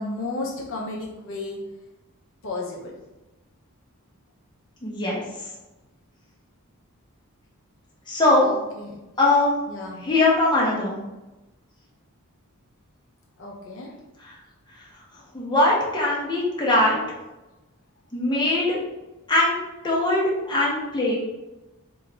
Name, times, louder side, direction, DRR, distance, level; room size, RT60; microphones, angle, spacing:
voice 1, 0.0-1.6 2.4-2.9 8.4-9.1 9.7-10.0 13.4-13.9, left 2 dB, 60° left, -2 dB, 0.6 m, -33 dB
voice 2, 4.8-5.2 8.1-8.5 9.2-9.5 10.0-11.0 14.2-14.4 15.3-17.2 18.1-18.8 19.3-19.6 19.8-21.2, left 2 dB, 20° left, -5 dB, 0.8 m, -21 dB
3.0 x 2.4 x 3.9 m, 1.0 s
head